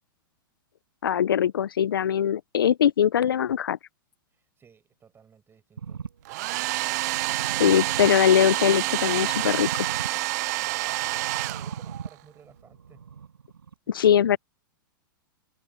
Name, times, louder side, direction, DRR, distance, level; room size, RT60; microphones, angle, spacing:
voice 1, 1.0-3.8 7.6-9.9 13.9-14.4, left 9 dB, 75° left, 0.7 m, -21 dB
voice 2, 4.3-6.0 10.4-13.1 14.0-14.4, right 7 dB, 20° right, 6.8 m, -56 dB
sound 1, 5.8-13.7, right 7 dB, 85° right, 5.9 m, -41 dB
Domestic sounds home sounds, 6.3-12.1, right 20 dB, 50° right, 0.4 m, -28 dB
hypercardioid pair, 110°, 12 cm